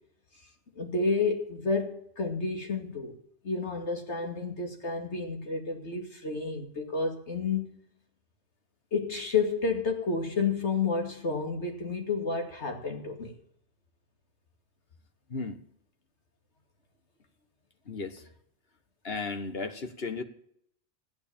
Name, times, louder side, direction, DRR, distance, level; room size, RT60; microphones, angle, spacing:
voice 1, 0.8-3.2 3.4-7.8 8.9-13.3, left 4 dB, 75° left, 2.7 m, -30 dB
voice 2, 15.3-15.6 17.9-18.2 19.0-20.2, left 4 dB, 60° left, 1.7 m, -35 dB
15.0 x 9.8 x 8.8 m
omnidirectional pair, 1.2 m